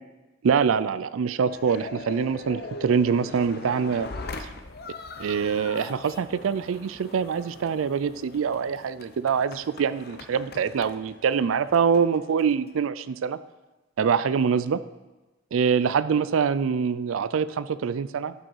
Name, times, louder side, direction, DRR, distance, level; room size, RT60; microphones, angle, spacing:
voice 1, 0.4-4.1 4.4-4.5 5.2-13.4 14.0-14.8 15.5-18.3, right 6 dB, 90° right, 15 dB, 0.4 m, -24 dB
sound 1, 1.5-12.8, left 3 dB, 55° left, 0.8 m, -41 dB
11.5 x 6.4 x 4.6 m, 1.1 s
head